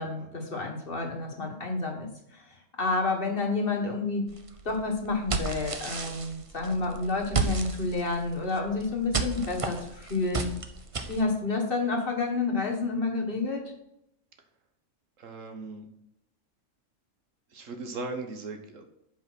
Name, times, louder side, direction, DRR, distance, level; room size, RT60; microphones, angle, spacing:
voice 1, 0.0-4.3 4.6-10.5 11.1-13.6, left 3 dB, 45° left, 1 dB, 1.8 m, -29 dB
sound 1, 4.3-11.2, right 4 dB, 30° right, 0.7 m, -34 dB
voice 2, 15.2-15.9 17.5-18.9, right 3 dB, 80° right, 6 dB, 1.6 m, -38 dB
7.8 x 5.4 x 6.1 m, 0.80 s
omnidirectional pair, 1.3 m